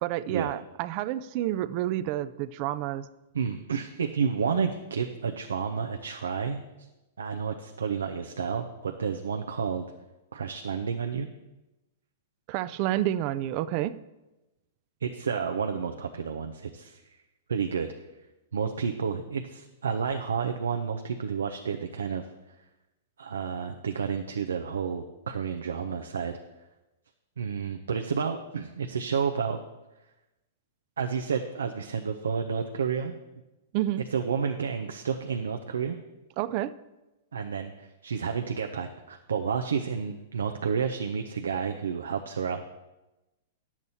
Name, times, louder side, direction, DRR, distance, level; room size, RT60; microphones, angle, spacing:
voice 1, 0.0-3.1 12.5-14.0 33.7-34.0 36.4-36.8, right 13 dB, 45° right, 15 dB, 0.4 m, -29 dB
voice 2, 3.3-6.6 7.2-9.8 10.3-11.3 15.0-17.0 17.5-17.9 18.5-22.2 23.2-26.3 27.4-29.6 31.0-33.2 34.1-36.0 37.3-42.6, right 6 dB, 90° right, 5 dB, 0.6 m, -30 dB
10.5 x 7.3 x 4.1 m, 1.0 s
hypercardioid pair, 125°, 0 cm